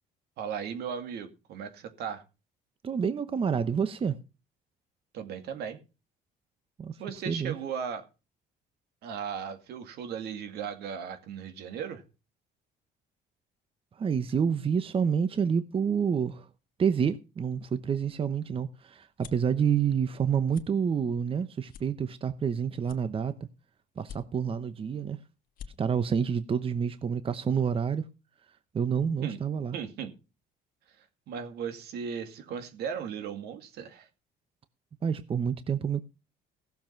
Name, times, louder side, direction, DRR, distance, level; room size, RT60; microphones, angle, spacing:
voice 1, 0.4-2.2 5.1-5.8 7.0-8.1 9.0-12.0 29.2-29.4 29.7-30.1 31.3-34.1, right 7 dB, 75° right, 2.3 m, -36 dB
voice 2, 2.8-4.2 6.8-6.9 7.3-7.5 13.9-16.5 16.8-23.3 24.0-25.2 25.8-28.0 28.7-29.8 35.0-36.0, right 7 dB, 35° right, 0.9 m, -28 dB
sound 1, 18.1-19.5 20.0-20.2 20.5-20.7 21.2-21.3 21.7-22.5 22.8-23.5 24.0-24.6 25.1-25.2 25.4-25.7, left 8 dB, 60° left, 1.5 m, -48 dB
16.0 x 7.2 x 5.8 m
cardioid pair, 105°, 17 cm